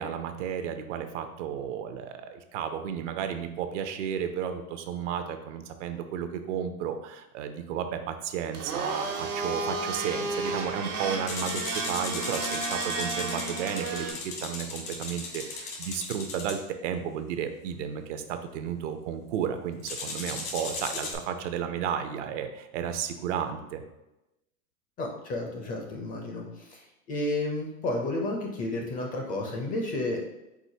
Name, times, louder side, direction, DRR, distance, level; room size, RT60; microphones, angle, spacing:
voice 1, 0.0-23.8, right 8 dB, 55° right, 8 dB, 0.6 m, -33 dB
Domestic sounds home sounds, 8.5-14.1, right 3 dB, 75° right, 1.2 m, -32 dB
sound 1, 11.3-16.6 19.9-21.2, left 3 dB, 80° left, 1.5 m, -36 dB
voice 2, 25.0-26.8 27.1-30.2, left 2 dB, 20° left, 1 dB, 0.5 m, -31 dB
4.8 x 3.7 x 2.7 m, 0.95 s
hypercardioid pair, 120°, 45 cm